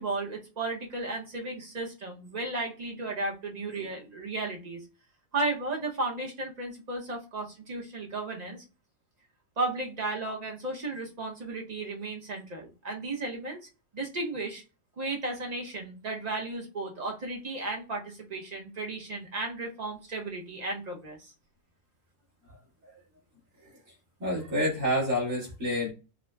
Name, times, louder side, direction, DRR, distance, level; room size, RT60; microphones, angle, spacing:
voice 1, 0.0-4.8 5.3-8.6 9.6-13.6 13.9-14.6 15.0-21.3, right 2 dB, 40° right, 0 dB, 0.7 m, -34 dB
voice 2, 24.2-25.9, equal, 80° right, -5 dB, 2.1 m, -28 dB
4.9 x 2.0 x 2.2 m, 0.31 s
omnidirectional pair, 1.5 m